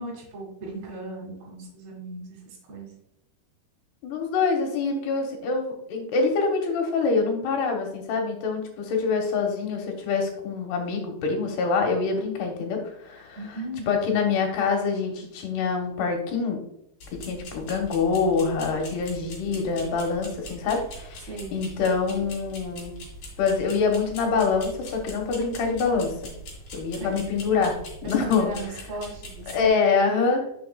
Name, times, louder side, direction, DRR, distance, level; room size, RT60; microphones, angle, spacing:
voice 1, 0.0-2.9 13.4-13.9 21.3-21.8 27.0-27.1 28.0-29.8, right 2 dB, 45° right, -4 dB, 2.7 m, -37 dB
voice 2, 4.0-13.4 13.9-16.6 17.2-23.0 23.4-26.1 26.7-27.8 28.0-28.5 29.5-30.6, left 4 dB, 75° left, 2 dB, 3.0 m, -25 dB
sound 1, 17.0-29.7, equal, 45° left, 2.8 m, -42 dB
10.5 x 6.5 x 2.3 m, 0.75 s
omnidirectional pair, 5.0 m